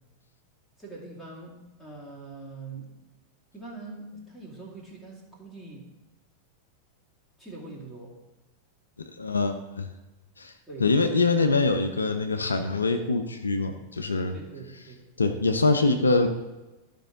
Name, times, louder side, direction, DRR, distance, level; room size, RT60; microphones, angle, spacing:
voice 1, 0.8-2.9 3.5-5.9 7.4-8.2 10.7-10.9 14.3-15.0, right 3 dB, ahead, -6 dB, 2.4 m, -43 dB
voice 2, 9.2-9.9 10.4-10.5 10.8-14.4 15.2-16.3, left 3 dB, 75° left, 7 dB, 0.6 m, -24 dB
12.0 x 5.4 x 3.8 m, 1.1 s
figure-of-eight pair, 90°, 0 cm